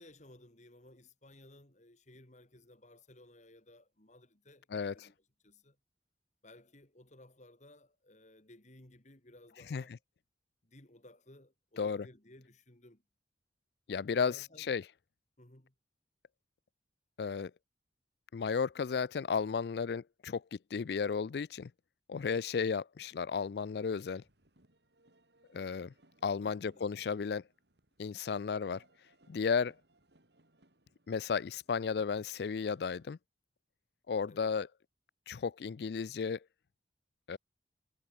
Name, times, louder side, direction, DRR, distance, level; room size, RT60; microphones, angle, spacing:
voice 1, 0.0-5.1 5.4-5.8 6.4-10.0 10.6-13.0 14.1-14.7 15.4-15.7 26.4-26.9 34.3-34.5, left 1 dB, 40° left, 3.1 m, -58 dB
voice 2, 13.9-14.8 17.2-17.5 18.3-21.7 22.1-24.2 25.5-25.9 26.2-27.4 28.0-28.8 29.3-29.7 31.1-33.2 34.1-34.7 35.3-36.4 37.3-37.4, left 5 dB, 60° left, 0.4 m, -34 dB
sound 1, 23.1-33.1, right 1 dB, 70° right, 3.9 m, -69 dB
head